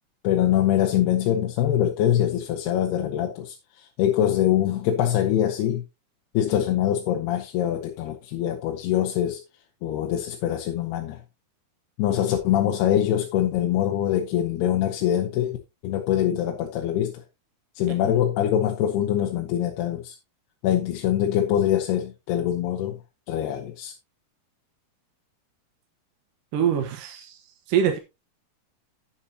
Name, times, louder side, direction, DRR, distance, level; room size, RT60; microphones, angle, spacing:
voice 1, 0.2-5.8 6.3-9.4 9.8-11.2 12.0-15.6 15.8-17.2 17.8-20.2 20.6-23.0 23.3-23.9, left 11 dB, 85° left, 3.1 m, -24 dB
voice 2, 26.5-27.4 27.7-28.0, right 8 dB, 65° right, 2.6 m, -23 dB
11.0 x 8.9 x 2.8 m
omnidirectional pair, 4.5 m